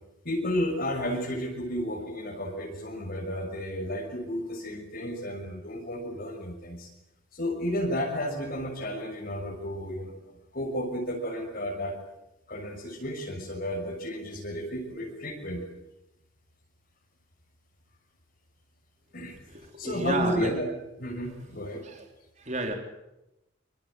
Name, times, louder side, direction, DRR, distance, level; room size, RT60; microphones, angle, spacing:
voice 1, 0.2-6.9 7.3-10.1 10.5-12.0 12.5-15.7 19.1-19.4 19.8-20.7 21.0-21.9, equal, 50° left, 0 dB, 6.4 m, -32 dB
voice 2, 19.5-20.5 21.8-22.0 22.4-22.8, right 2 dB, 35° right, 3 dB, 4.3 m, -31 dB
27.0 x 26.5 x 7.9 m, 0.91 s
head